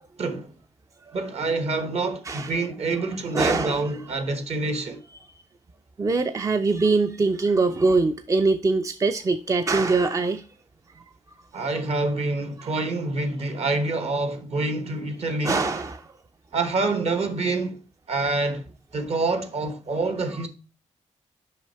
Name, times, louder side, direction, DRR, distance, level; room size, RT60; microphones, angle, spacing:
voice 1, 0.2-0.5 1.1-5.0 11.5-15.6 16.5-17.8 18.1-18.6 18.9-20.5, right 3 dB, 55° right, 1.3 m, -26 dB
voice 2, 2.3-2.6 3.3-3.9 6.0-10.4 15.4-16.1, right 3 dB, 25° right, 0.4 m, -23 dB
5.8 x 5.6 x 4.4 m
wide cardioid pair, 130°, 13 cm